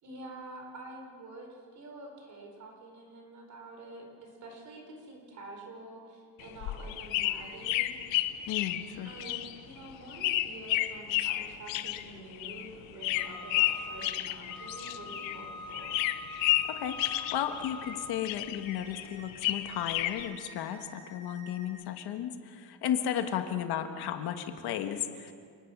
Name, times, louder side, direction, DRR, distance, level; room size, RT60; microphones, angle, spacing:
voice 1, 0.0-8.4 9.0-16.0, right 2 dB, 40° right, 1 dB, 5.0 m, -47 dB
sound 1, 6.4-15.5 15.7-18.0 18.2-20.3, left 15 dB, 80° left, 1.2 m, -32 dB
voice 2, 8.5-9.1 16.7-25.3, left 10 dB, 60° left, 7 dB, 1.5 m, -34 dB
sound 2, 13.2-14.0 14.5-18.1 18.6-19.2 19.7-21.7, left 2 dB, ahead, 5.1 m, -45 dB
29.0 x 19.0 x 6.1 m, 2.2 s
cardioid pair, 170°, 45 cm